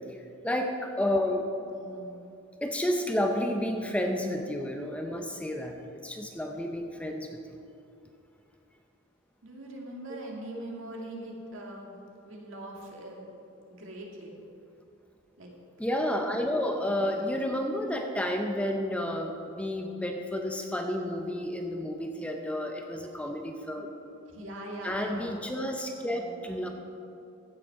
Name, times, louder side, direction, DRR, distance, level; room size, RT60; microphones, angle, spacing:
voice 1, 0.1-1.5 2.6-7.4 15.8-23.9 24.8-26.7, left 1 dB, 5° left, 3 dB, 0.6 m, -31 dB
voice 2, 1.7-2.2 9.4-11.9 12.2-13.3 13.7-14.3 15.4-15.5 16.8-17.3 24.3-25.5 26.1-26.7, right 1 dB, 70° right, -1 dB, 2.1 m, -42 dB
15.5 x 7.7 x 4.7 m, 2.7 s
head